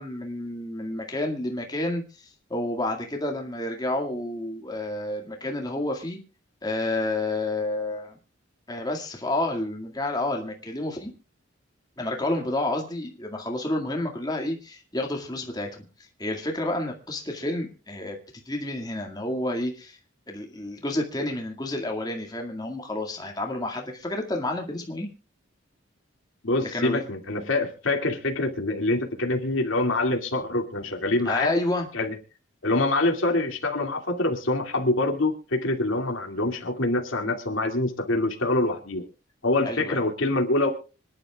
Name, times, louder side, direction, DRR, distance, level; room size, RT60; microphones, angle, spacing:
voice 1, 0.0-6.2 6.6-8.1 8.7-11.1 12.0-15.8 16.2-18.2 18.5-20.0 20.3-25.1 26.7-27.0 31.3-31.9 39.6-40.0, left 1 dB, 20° left, 2 dB, 2.0 m, -30 dB
voice 2, 26.4-31.5 31.9-32.2 32.6-39.1 39.4-40.7, left 2 dB, 85° left, 3 dB, 2.4 m, -25 dB
26.0 x 11.0 x 2.4 m, 0.34 s
head